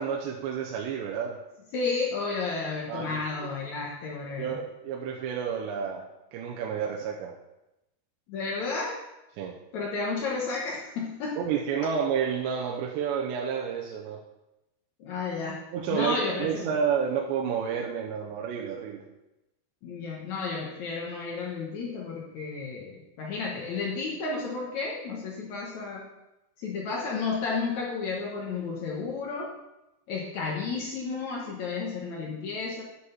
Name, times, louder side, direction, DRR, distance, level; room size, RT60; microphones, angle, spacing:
voice 1, 0.0-1.4 2.9-3.5 4.4-7.3 9.4-9.5 11.4-14.2 15.7-19.1, right 7 dB, 80° right, -1 dB, 2.9 m, -30 dB
voice 2, 1.7-4.6 8.3-9.0 9.7-11.4 15.0-15.6 15.9-16.7 19.8-26.1 26.6-29.5 30.1-32.8, left 4 dB, 80° left, -2 dB, 1.6 m, -32 dB
9.9 x 6.5 x 5.7 m, 0.93 s
omnidirectional pair, 5.2 m